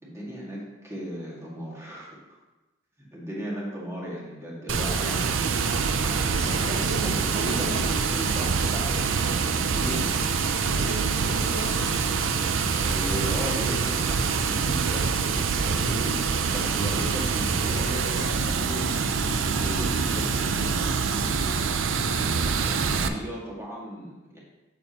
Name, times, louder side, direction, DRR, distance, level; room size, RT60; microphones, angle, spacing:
voice 1, 0.0-2.4 3.0-5.7 6.0-10.1 12.8-21.5 22.0-24.4, equal, 15° right, -5 dB, 1.9 m, -36 dB
Water, 4.7-23.1, right 5 dB, 90° right, 0.5 m, -25 dB
voice 2, 6.8-7.9 10.7-12.0, right 2 dB, 65° right, -1 dB, 0.9 m, -35 dB
8.4 x 7.1 x 2.9 m, 1.1 s
head